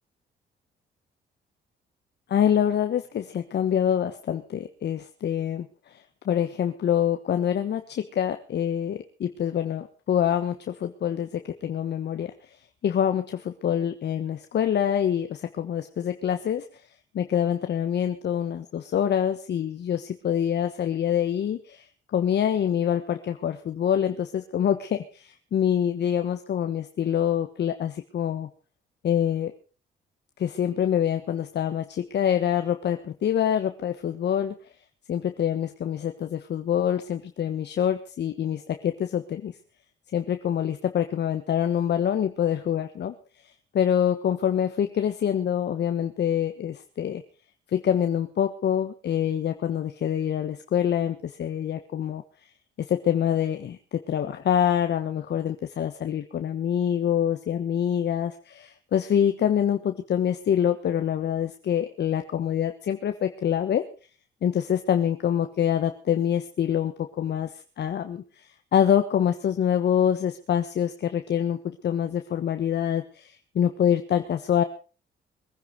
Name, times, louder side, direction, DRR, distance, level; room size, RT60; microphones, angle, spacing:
voice 1, 2.3-5.7 6.2-12.3 12.8-16.7 17.1-21.9 22.1-28.5 29.0-29.5 30.4-34.5 35.1-39.5 40.1-43.1 43.7-47.2 47.7-52.2 52.9-63.8 64.4-67.5 67.8-68.5 68.7-74.6, left 9 dB, 60° left, 8 dB, 1.3 m, -25 dB
22.0 x 10.0 x 5.1 m, 0.36 s
cardioid pair, 90°, 20 cm